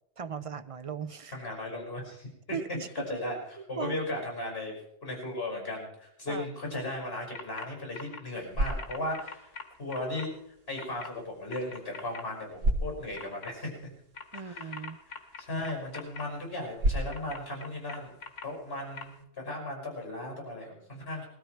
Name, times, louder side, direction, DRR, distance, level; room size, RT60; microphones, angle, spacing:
voice 1, 0.2-1.3 2.5-3.1 3.8-4.0 6.3-6.4 14.3-15.0, right 6 dB, 45° right, 11 dB, 0.5 m, -38 dB
voice 2, 1.3-2.3 2.9-4.7 5.0-9.5 9.8-10.3 10.7-13.9 14.3-14.8 15.4-18.1 18.4-21.3, left 1 dB, 50° left, 0 dB, 5.9 m, -36 dB
sound 1, 7.3-7.7 7.9-8.2 8.6-10.3 10.8-11.1 11.5-12.2 13.1-13.5 14.1-16.2 17.1-18.4 19.0-19.1, left 5 dB, 70° left, 2.0 m, -42 dB
sound 2, 8.2-19.2, right 1 dB, 80° right, 1.7 m, -37 dB
20.0 x 13.0 x 4.6 m, 0.78 s
omnidirectional pair, 1.3 m